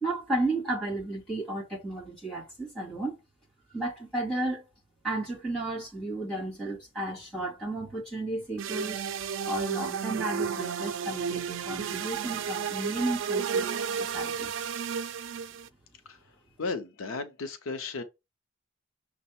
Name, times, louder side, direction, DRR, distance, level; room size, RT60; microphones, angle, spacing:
voice 1, 0.0-3.2 3.7-4.6 5.0-9.0 9.5-14.5, right 2 dB, 5° left, 2.1 m, -33 dB
sound 1, 8.6-15.7, right 6 dB, 70° right, 0.3 m, -32 dB
voice 2, 16.6-18.0, left 4 dB, 90° left, 0.6 m, -34 dB
6.1 x 2.1 x 4.2 m
head